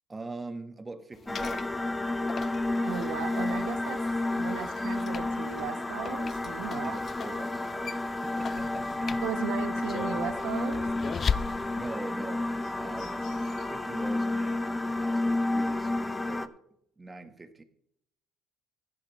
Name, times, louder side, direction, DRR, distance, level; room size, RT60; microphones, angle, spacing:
voice 1, 0.1-2.0 6.7-9.2 11.8-13.3 13.7-16.5 17.0-17.6, right 3 dB, 20° right, 1.4 m, -43 dB
sound 1, 1.1-11.9, left 6 dB, 40° left, 0.3 m, -39 dB
sound 2, 1.3-16.5, left 2 dB, 15° left, 0.8 m, -31 dB
voice 2, 2.7-4.0 4.4-7.0 7.3-7.4 9.2-10.9, right 10 dB, 85° right, 1.2 m, -36 dB
Bird, 8.4-13.6, left 5 dB, 70° left, 3.3 m, -53 dB
14.5 x 11.5 x 3.1 m
cardioid pair, 100°, 0 cm